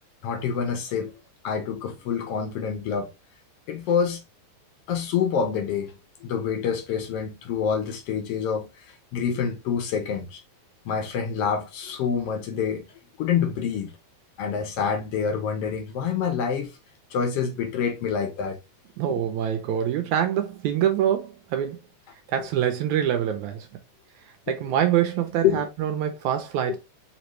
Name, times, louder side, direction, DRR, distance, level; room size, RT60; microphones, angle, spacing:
voice 1, 0.2-1.1 1.4-3.1 3.7-4.2 4.9-10.4 10.8-12.9 13.2-13.9 14.4-16.7 17.1-18.6 19.1-19.3 22.4-22.5 24.5-24.8 25.4-25.7 26.7-26.8, left 7 dB, 65° left, 1.6 m, -27 dB
voice 2, 19.0-21.8 22.3-23.7 24.5-26.8, right 10 dB, 80° right, 1.9 m, -25 dB
5.1 x 3.1 x 3.0 m
omnidirectional pair, 3.6 m